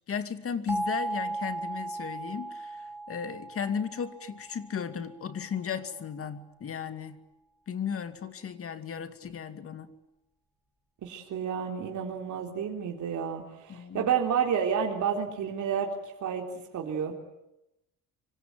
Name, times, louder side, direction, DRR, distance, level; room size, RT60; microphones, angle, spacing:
voice 1, 0.1-7.2 7.7-9.9 13.7-14.1, left 7 dB, 40° left, 10 dB, 2.5 m, -35 dB
sound 1, 0.7-5.4, right 2 dB, 5° right, 3.4 m, -37 dB
voice 2, 11.0-15.9 16.2-16.4 16.7-17.1, right 7 dB, 55° right, 1 dB, 3.7 m, -30 dB
25.5 x 25.5 x 9.2 m, 0.88 s
cardioid pair, 145°, 35 cm